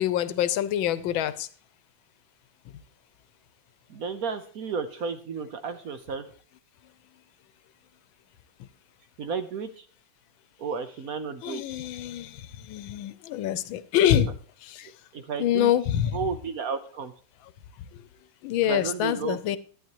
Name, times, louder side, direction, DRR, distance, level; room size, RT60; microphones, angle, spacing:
voice 1, 0.0-1.5 11.4-14.9 15.4-16.2 17.9-18.0 18.4-19.6, left 11 dB, 85° left, 1.5 m, -26 dB
voice 2, 3.9-6.3 9.2-9.9 10.6-11.8 15.1-15.7 16.1-17.1 18.7-19.6, right 5 dB, 60° right, 1.1 m, -32 dB
11.5 x 9.8 x 3.0 m
omnidirectional pair, 2.1 m